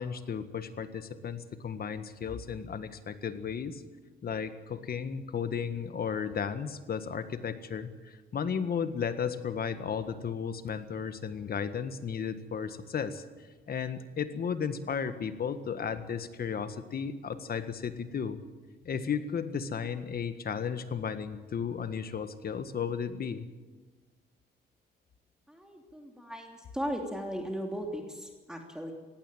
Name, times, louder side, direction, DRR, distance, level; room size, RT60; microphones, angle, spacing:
voice 1, 0.0-3.8 4.2-13.2 13.7-18.4 18.8-23.5, left 7 dB, 50° left, 10 dB, 1.7 m, -34 dB
voice 2, 25.5-28.9, equal, 5° right, 2 dB, 3.1 m, -37 dB
18.0 x 16.0 x 9.2 m, 1.3 s
cardioid pair, 90°, 20 cm